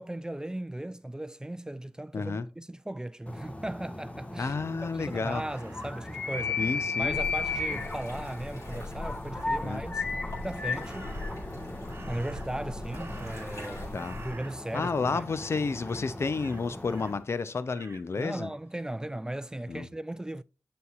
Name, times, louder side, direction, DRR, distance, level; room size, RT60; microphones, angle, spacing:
voice 1, 0.0-4.5 4.8-6.6 7.0-10.0 10.4-11.1 12.1-14.0 14.2-15.2 18.2-20.4, right 1 dB, 15° right, 0.4 m, -37 dB
voice 2, 2.1-2.5 4.4-5.4 6.6-7.2 7.7-7.8 9.6-9.8 13.9-14.2 14.7-18.5 19.7-19.9, left 4 dB, 65° left, 0.7 m, -31 dB
sound 1, 3.3-17.2, left 3 dB, 25° left, 1.5 m, -36 dB
Crow, 5.3-7.0 10.8-11.5 11.9-13.7 13.9-15.0 15.3-15.5 15.8-17.1 17.7-18.1, right 3 dB, 55° right, 1.1 m, -51 dB
sound 2, 7.0-14.3, left 2 dB, 85° left, 4.5 m, -41 dB
7.8 x 6.8 x 2.5 m
cardioid pair, 45°, 5 cm